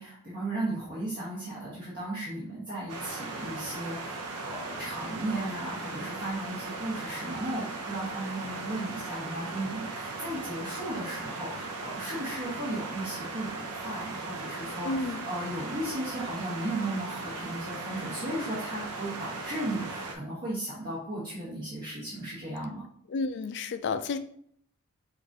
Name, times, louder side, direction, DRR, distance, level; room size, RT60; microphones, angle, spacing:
voice 1, 0.0-22.8, right 1 dB, 50° right, -8 dB, 1.3 m, -35 dB
sound 1, 2.9-20.1, right 3 dB, 85° right, 0.7 m, -38 dB
voice 2, 14.8-15.3 23.1-24.2, left 3 dB, 50° left, 10 dB, 0.3 m, -31 dB
5.9 x 2.5 x 2.7 m, 0.65 s
head